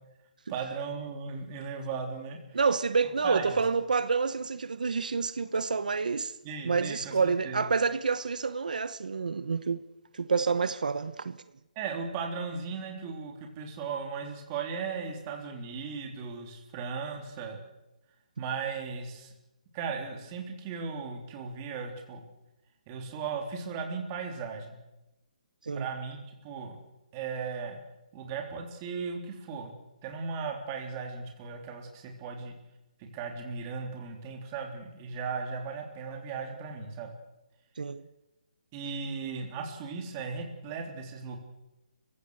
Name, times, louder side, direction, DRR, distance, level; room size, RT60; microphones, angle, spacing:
voice 1, 0.5-2.6 3.2-3.6 6.4-7.6 11.8-17.6 18.4-19.3 19.7-22.2 22.9-24.8 25.8-26.8 27.1-27.8 28.1-29.7 30.0-32.5 33.1-37.1 38.7-41.4, right 5 dB, 20° right, 3.5 m, -37 dB
voice 2, 2.5-6.3 6.6-9.8 10.1-11.4 25.6-25.9 37.8-38.0, right 5 dB, 85° right, 1.1 m, -28 dB
29.5 x 16.0 x 6.5 m
hypercardioid pair, 170°, 4 cm